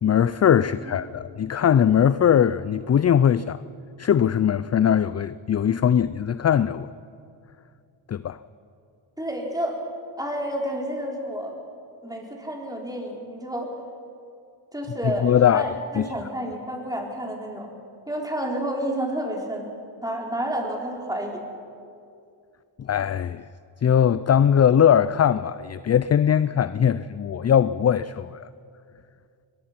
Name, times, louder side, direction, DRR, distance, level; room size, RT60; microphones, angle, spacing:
voice 1, 0.0-3.6 4.0-6.9 8.1-8.4 15.0-16.1 22.8-23.4 23.8-28.5, left 9 dB, 35° left, 0.4 m, -20 dB
voice 2, 9.2-9.8 10.2-11.6 12.0-13.7 14.7-17.7 18.1-19.7 20.0-21.4, right 1 dB, 10° right, 4.0 m, -30 dB
21.5 x 21.0 x 5.9 m
cardioid pair, 80°, 47 cm